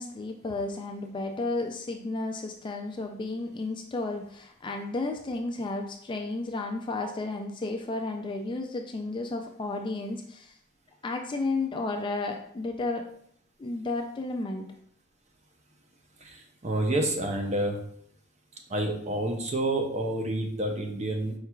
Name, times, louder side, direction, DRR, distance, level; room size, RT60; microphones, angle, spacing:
voice 1, 0.0-10.6 11.0-13.1 13.6-14.7, left 2 dB, 20° left, 3 dB, 0.3 m, -32 dB
voice 2, 16.2-17.8 18.7-21.3, right 1 dB, 30° right, 3 dB, 0.7 m, -29 dB
4.6 x 4.5 x 2.3 m, 0.66 s
head